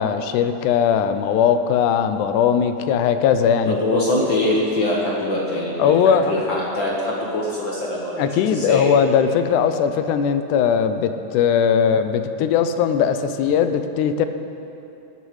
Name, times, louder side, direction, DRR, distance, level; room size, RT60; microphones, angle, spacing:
voice 1, 0.0-4.0 5.8-6.4 8.2-14.3, left 7 dB, 85° left, 9 dB, 2.1 m, -19 dB
voice 2, 3.6-6.0 6.3-8.9, left 1 dB, 55° left, -4 dB, 1.5 m, -23 dB
17.5 x 9.6 x 3.2 m, 2.9 s
omnidirectional pair, 3.5 m